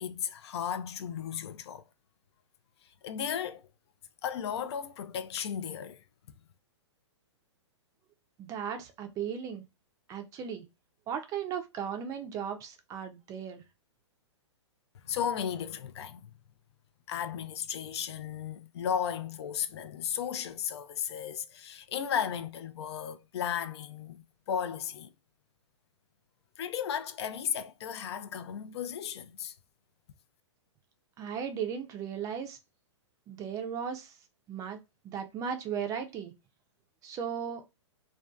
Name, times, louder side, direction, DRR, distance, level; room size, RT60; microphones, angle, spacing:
voice 1, 0.0-1.8 3.0-3.7 4.2-6.0 15.0-16.3 17.1-24.2 24.5-25.1 26.6-29.5, left 8 dB, 60° left, 0.4 m, -35 dB
voice 2, 8.4-9.6 10.1-10.6 11.1-13.6 31.2-32.6 33.3-34.2 34.5-34.8 35.0-36.3 37.0-37.6, right 7 dB, 20° right, 0.4 m, -36 dB
2.5 x 2.2 x 2.2 m
hypercardioid pair, 130°, 16 cm